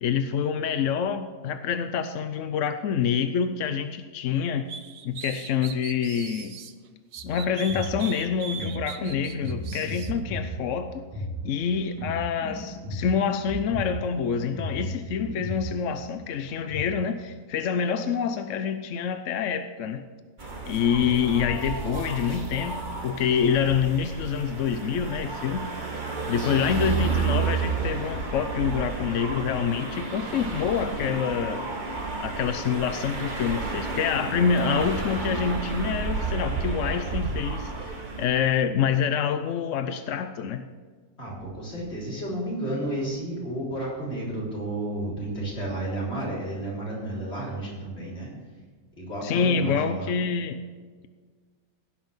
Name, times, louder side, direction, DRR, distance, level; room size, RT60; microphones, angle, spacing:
voice 1, 0.0-4.7 5.0-6.6 7.2-11.1 11.4-20.0 20.7-25.7 26.3-31.6 32.2-40.6 49.2-50.6, left 7 dB, 65° left, 9 dB, 0.8 m, -26 dB
tooth whistle, 4.7-6.7 7.1-10.1, right 8 dB, 60° right, 1.1 m, -39 dB
sound 1, 7.2-16.9, equal, 10° left, 4.4 m, -35 dB
sound 2, 20.4-38.3, right 4 dB, 30° right, 1.4 m, -31 dB
voice 2, 41.2-48.3 49.0-50.1, right 1 dB, 35° left, -6 dB, 4.4 m, -32 dB
16.5 x 5.8 x 7.2 m, 1.5 s
omnidirectional pair, 1.9 m